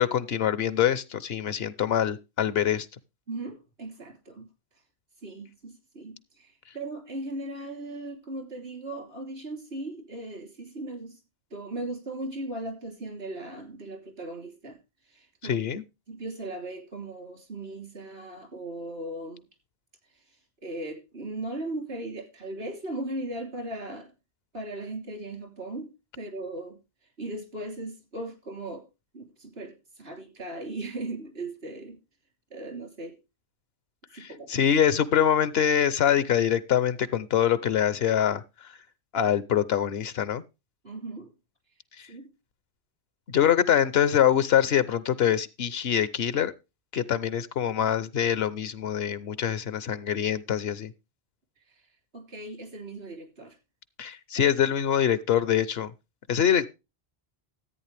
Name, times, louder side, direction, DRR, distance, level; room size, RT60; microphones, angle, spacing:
voice 1, 0.0-2.9 15.4-15.8 34.1-38.7 39.1-40.4 42.0-42.1 43.3-46.5 46.9-50.9 54.0-55.9 56.3-56.7, left 9 dB, 75° left, 1.0 m, -24 dB
voice 2, 3.3-4.5 5.2-11.2 11.5-14.8 15.1-15.6 16.1-19.4 20.6-24.1 24.5-26.8 27.2-28.9 29.1-32.0 32.5-33.1 34.1-34.6 40.8-41.3 42.1-42.3 52.1-53.6, right 2 dB, 80° right, 3.6 m, -38 dB
14.0 x 8.8 x 3.3 m
omnidirectional pair, 1.0 m